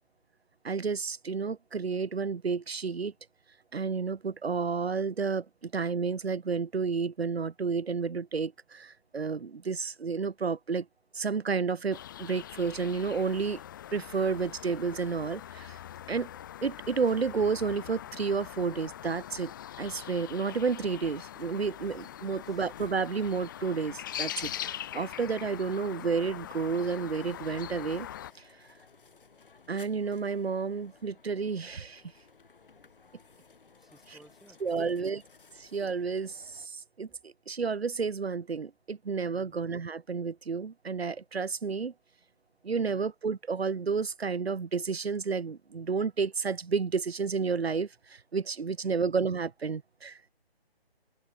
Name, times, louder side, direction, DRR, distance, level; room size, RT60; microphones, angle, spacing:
voice 1, 0.6-3.1 3.7-10.9 11.1-13.6 13.9-15.8 16.1-16.3 16.6-19.5 19.8-28.1 29.7-32.0 34.6-35.2 35.6-41.9 42.6-50.2, right 5 dB, 75° right, 1.1 m, -31 dB
sound 1, 11.9-28.3, left 11 dB, 20° left, 1.2 m, -42 dB
sound 2, 21.4-36.7, left 5 dB, 60° left, 7.3 m, -57 dB
voice 2, 22.3-22.7 33.8-35.1 39.3-39.6 48.8-49.0, right 1 dB, ahead, 3.6 m, -59 dB
open air
figure-of-eight pair, 155°, 31 cm